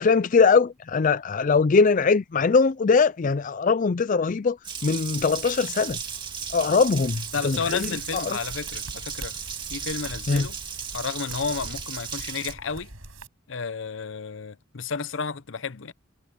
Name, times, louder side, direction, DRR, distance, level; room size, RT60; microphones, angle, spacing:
voice 1, 0.0-4.6 4.8-6.0 6.5-8.4 10.3-10.5, left 4 dB, 40° left, 0.4 m, -21 dB
Water tap faucet, 4.6-12.5, right 6 dB, 25° right, 2.3 m, -35 dB
sound 1, 5.2-13.3, right 3 dB, 90° right, 7.8 m, -44 dB
voice 2, 7.3-9.4 9.7-10.6 10.9-12.9 13.5-15.9, left 5 dB, 70° left, 0.8 m, -32 dB
head